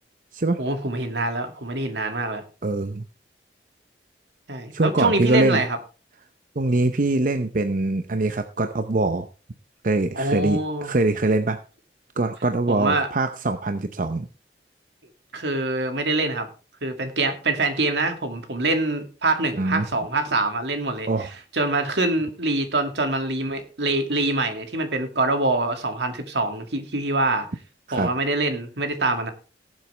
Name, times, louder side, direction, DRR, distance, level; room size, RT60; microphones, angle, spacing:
voice 1, 0.6-2.4 4.5-5.8 10.1-10.9 12.7-13.1 15.3-16.5 16.8-21.3 21.5-27.5 27.9-29.3, right 2 dB, 80° right, 6 dB, 2.3 m, -25 dB
voice 2, 2.6-3.0 4.7-5.6 6.6-9.3 9.8-11.6 12.2-14.3 19.6-19.9 21.1-21.3 27.9-28.1, right 2 dB, 50° right, 8 dB, 0.7 m, -23 dB
19.0 x 7.5 x 3.4 m, 0.33 s
head